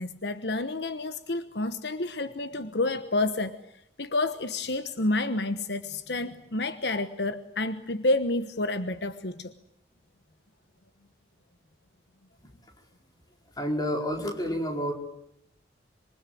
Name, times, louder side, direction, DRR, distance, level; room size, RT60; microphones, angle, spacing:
voice 1, 0.0-3.6 4.0-9.5, left 2 dB, 70° left, 11 dB, 1.2 m, -29 dB
voice 2, 13.6-14.9, equal, 20° left, 2 dB, 4.8 m, -29 dB
26.0 x 24.0 x 9.3 m, 0.73 s
head